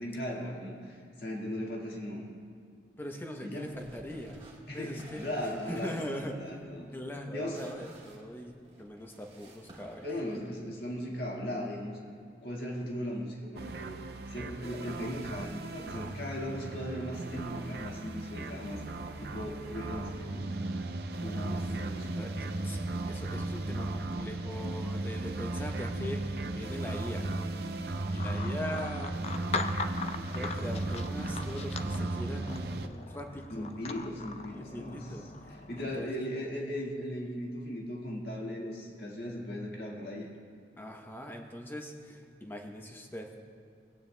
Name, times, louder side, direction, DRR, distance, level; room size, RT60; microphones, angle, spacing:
voice 1, 0.0-2.2 3.4-3.7 4.7-6.9 7.3-7.6 10.0-12.0 12.4-14.0 14.3-18.8 19.2-20.9 21.1-22.2 28.2-28.5 33.5-35.1 35.5-40.3, equal, 60° left, -2 dB, 1.7 m, -38 dB
voice 2, 3.0-4.4 4.7-5.3 5.7-6.5 6.9-8.5 8.8-10.1 21.4-21.6 22.1-22.8 23.1-27.2 28.1-29.2 30.3-33.7 34.5-36.2 40.8-43.3, left 1 dB, 10° left, 2 dB, 0.7 m, -41 dB
sound 1, 3.7-10.4, right 1 dB, 30° right, 1.4 m, -55 dB
sound 2, 13.6-32.9, right 2 dB, 60° right, 0.5 m, -36 dB
sound 3, 28.2-36.0, left 4 dB, 35° left, 0.3 m, -40 dB
20.0 x 8.8 x 2.2 m, 2.3 s
head